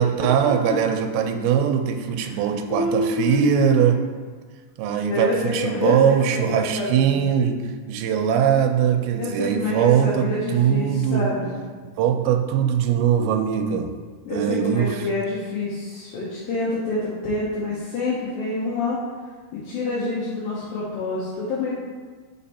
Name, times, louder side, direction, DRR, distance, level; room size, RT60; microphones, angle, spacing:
voice 1, 0.0-4.0 4.8-7.6 7.9-11.3 12.0-13.9 14.3-15.0, right 8 dB, 80° right, 5 dB, 2.3 m, -21 dB
voice 2, 2.7-3.9 5.1-6.0 6.3-7.1 9.2-11.6 14.3-19.0 19.5-21.7, left 2 dB, 70° left, -7 dB, 2.5 m, -27 dB
5.3 x 5.0 x 4.2 m, 1.5 s
omnidirectional pair, 4.6 m